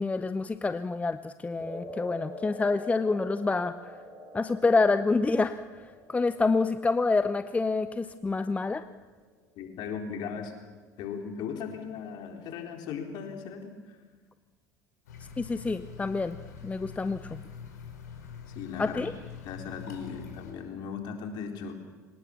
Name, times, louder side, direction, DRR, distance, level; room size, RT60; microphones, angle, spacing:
voice 1, 0.0-3.7 4.3-5.6 6.1-8.8 15.4-16.4 16.6-17.2 18.8-19.1, left 3 dB, 15° left, 12 dB, 0.8 m, -27 dB
sound 1, 1.6-9.9, equal, 25° right, 5.3 m, -47 dB
voice 2, 9.6-10.5 11.0-13.7 18.6-19.0 19.4-21.7, left 6 dB, 50° left, 4 dB, 3.9 m, -37 dB
sound 2, 15.1-20.5, left 6 dB, 70° left, 4.7 m, -44 dB
25.0 x 19.0 x 7.3 m, 1.3 s
figure-of-eight pair, 70°, 9 cm